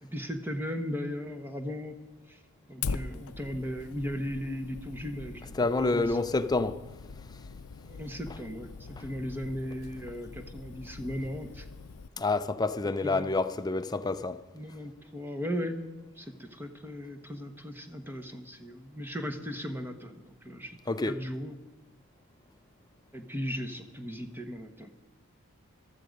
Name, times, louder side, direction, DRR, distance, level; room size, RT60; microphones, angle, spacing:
voice 1, 0.0-1.9 2.3-2.4 2.7-6.2 7.8-11.7 13.0-13.4 14.5-15.8 16.2-20.8 21.0-21.6 23.1-24.9, equal, 10° right, 1.0 m, -37 dB
Fire, 2.8-12.1, left 4 dB, 75° left, 0.5 m, -42 dB
voice 2, 5.5-6.9 12.2-14.4 20.9-21.2, left 3 dB, 15° left, 0.5 m, -28 dB
14.5 x 13.0 x 5.3 m
head